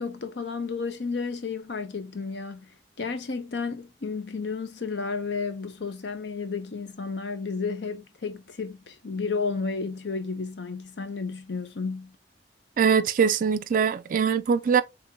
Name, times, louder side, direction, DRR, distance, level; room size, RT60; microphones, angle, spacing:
voice 1, 0.0-2.7 3.0-12.2, left 4 dB, 70° left, 0.7 m, -32 dB
voice 2, 12.8-14.8, right 6 dB, 50° right, 0.4 m, -22 dB
3.7 x 3.4 x 2.8 m
head